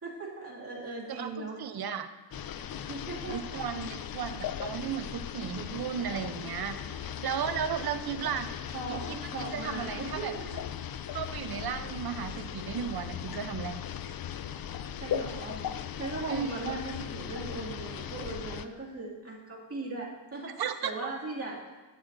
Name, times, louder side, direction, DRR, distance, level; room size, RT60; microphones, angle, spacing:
voice 1, 0.0-1.6 2.9-3.6 8.7-10.6 15.0-15.6 16.0-21.6, right 3 dB, 30° right, -6 dB, 2.2 m, -38 dB
voice 2, 1.1-2.1 3.3-8.5 8.9-9.2 9.5-10.3 11.1-13.8 16.3-16.7 20.6-20.9, right 7 dB, 50° right, 8 dB, 0.7 m, -35 dB
sound 1, 2.3-18.7, left 9 dB, 50° left, 0.5 m, -38 dB
11.0 x 8.9 x 2.6 m, 1.2 s
cardioid pair, 95°, 46 cm